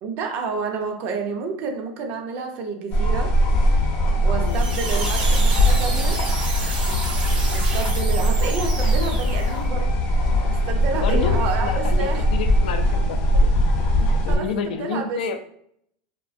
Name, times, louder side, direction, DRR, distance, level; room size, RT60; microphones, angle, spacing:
voice 1, 0.0-3.3 4.2-6.2 7.5-9.9 10.5-12.3 13.9-14.0 14.3-15.2, right 4 dB, 50° right, 4 dB, 0.5 m, -29 dB
sound 1, 2.9-14.4, equal, 45° left, 0.6 m, -20 dB
voice 2, 4.3-4.8 10.9-13.5 14.0-15.4, left 5 dB, 90° left, 6 dB, 0.3 m, -30 dB
sound 2, 4.5-9.7, right 3 dB, 90° right, 0.7 m, -31 dB
2.5 x 2.1 x 2.5 m, 0.68 s
supercardioid pair, 140°, 5 cm